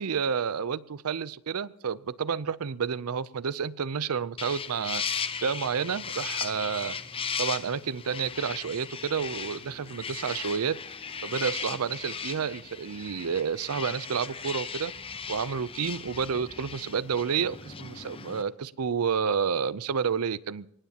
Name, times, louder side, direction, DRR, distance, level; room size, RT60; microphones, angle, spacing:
voice 1, 0.0-5.0 5.4-7.0 7.4-10.8 11.2-14.9 15.3-20.7, right 6 dB, 80° right, 19 dB, 0.5 m, -30 dB
sound 1, 4.4-18.4, left 6 dB, 25° left, 0.7 m, -37 dB
23.0 x 19.0 x 2.9 m, 0.76 s
head